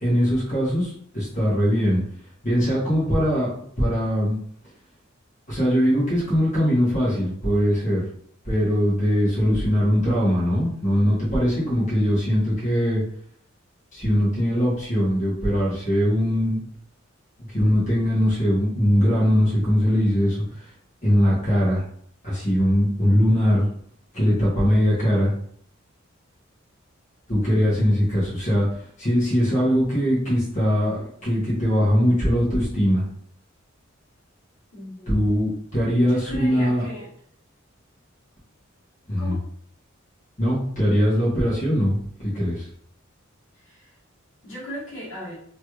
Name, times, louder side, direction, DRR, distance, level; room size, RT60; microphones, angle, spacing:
voice 1, 0.0-2.0 2.4-3.5 3.8-4.4 5.5-8.0 8.4-13.0 13.9-16.6 17.5-20.7 21.0-21.8 22.2-23.6 24.1-25.3 27.3-33.0 35.1-36.9 39.1-39.4 40.4-42.7, equal, 40° left, -7 dB, 1.3 m, -21 dB
voice 2, 34.7-35.3 36.0-37.1 39.2-39.4 43.6-43.9 44.4-45.3, equal, 75° left, -6 dB, 1.4 m, -37 dB
3.1 x 3.1 x 2.4 m, 0.63 s
head